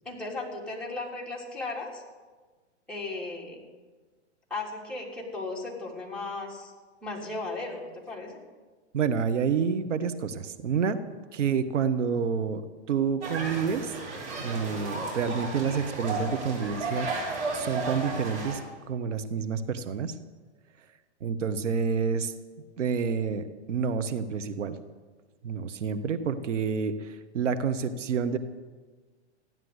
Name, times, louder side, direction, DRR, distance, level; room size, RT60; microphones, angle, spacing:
voice 1, 0.1-2.0 2.9-3.6 4.5-6.7 7.0-8.4, left 3 dB, 5° left, -4 dB, 3.4 m, -36 dB
voice 2, 8.9-11.0 11.3-12.6 12.9-13.9 14.4-17.1 17.5-18.6 18.9-20.1 21.2-22.3 22.8-24.8 25.4-28.4, right 6 dB, 85° right, 10 dB, 1.3 m, -28 dB
sound 1, 13.2-18.6, right 3 dB, 40° right, 6.4 m, -34 dB
15.0 x 11.0 x 8.1 m, 1.4 s
hypercardioid pair, 135°, 36 cm